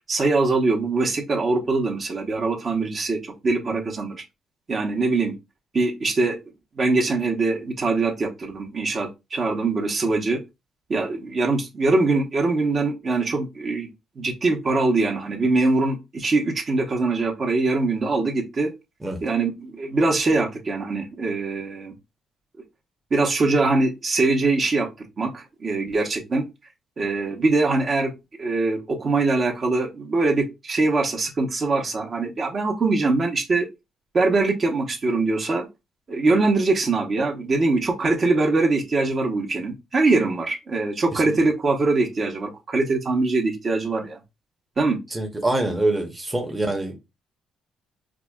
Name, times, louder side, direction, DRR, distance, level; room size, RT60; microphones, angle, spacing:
voice 1, 0.1-4.2 4.7-5.3 5.7-6.4 6.8-10.4 10.9-13.9 14.2-18.7 19.2-21.9 23.1-24.9 25.2-26.4 27.0-28.1 28.4-33.7 34.1-35.7 36.1-44.2 44.8-45.0, right 3 dB, 40° right, 0.9 m, -22 dB
voice 2, 45.1-47.0, right 2 dB, 10° right, 0.8 m, -25 dB
4.8 x 2.0 x 2.3 m
cardioid pair, 90°, 0 cm